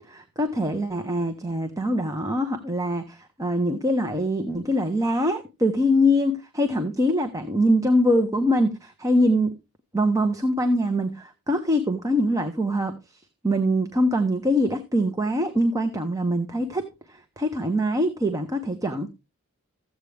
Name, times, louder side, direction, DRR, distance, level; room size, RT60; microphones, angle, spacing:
voice 1, 0.0-9.6 9.9-13.0 13.4-16.9 17.4-19.1, equal, 15° right, 0.9 m, -23 dB
14.5 x 8.2 x 3.4 m
head